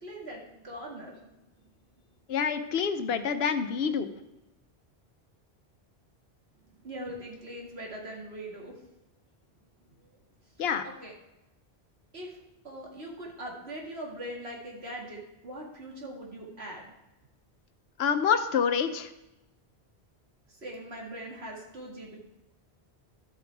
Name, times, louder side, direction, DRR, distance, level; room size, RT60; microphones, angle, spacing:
voice 1, 0.0-1.4 6.8-8.8 10.0-10.2 10.6-11.1 12.1-12.4 12.6-16.9 20.6-22.2, right 1 dB, 80° right, -2 dB, 2.4 m, -41 dB
voice 2, 2.3-4.1 10.6-10.8 18.0-19.1, left 7 dB, 75° left, 10 dB, 1.0 m, -27 dB
12.5 x 7.8 x 3.4 m, 0.95 s
omnidirectional pair, 1.1 m